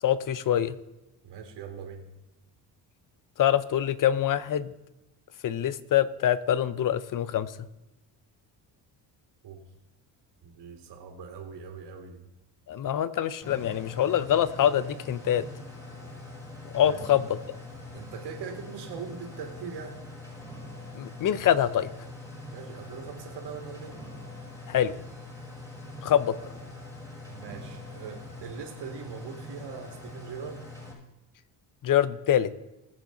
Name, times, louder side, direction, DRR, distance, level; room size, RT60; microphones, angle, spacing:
voice 1, 0.0-0.8 3.4-4.7 5.4-7.7 12.7-15.5 16.7-17.6 20.9-21.9 24.7-25.0 26.0-26.4 31.8-32.5, left 10 dB, 50° left, 15 dB, 0.9 m, -25 dB
voice 2, 1.2-2.1 9.4-9.6 10.4-12.2 16.8-17.0 17.9-20.0 22.5-24.0 27.3-30.7, right 6 dB, 75° right, 1 dB, 2.5 m, -41 dB
sound 1, 13.4-30.9, left 2 dB, 5° left, 5.4 m, -43 dB
21.0 x 7.5 x 4.0 m, 0.99 s
cardioid pair, 95°, 42 cm